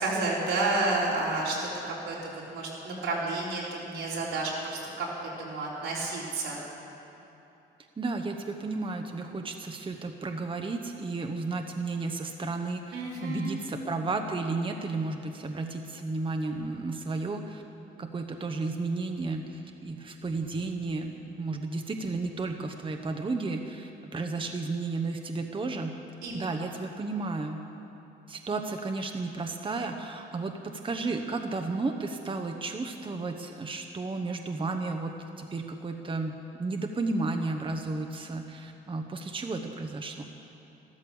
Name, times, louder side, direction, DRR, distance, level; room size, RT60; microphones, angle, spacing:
voice 1, 0.0-6.6 12.9-13.6 26.2-26.4, right 2 dB, 85° right, -5 dB, 4.0 m, -31 dB
voice 2, 8.0-17.6 18.0-26.0 26.3-27.6 28.3-40.2, right 3 dB, 25° right, 4 dB, 1.0 m, -33 dB
13.5 x 13.0 x 7.0 m, 2.9 s
cardioid pair, 90°, 20 cm